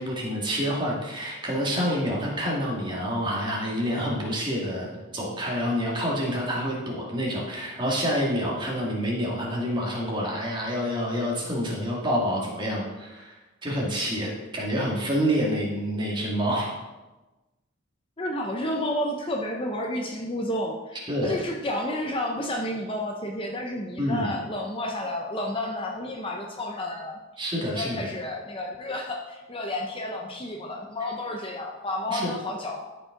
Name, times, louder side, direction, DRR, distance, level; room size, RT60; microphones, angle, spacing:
voice 1, 0.0-13.3 13.6-16.7 21.1-21.4 24.0-24.3 27.4-28.1 32.1-32.3, equal, 20° right, -3 dB, 2.0 m, -27 dB
voice 2, 18.2-27.2 27.6-32.8, left 1 dB, 25° left, 1 dB, 0.7 m, -31 dB
13.5 x 5.3 x 3.8 m, 1.1 s
head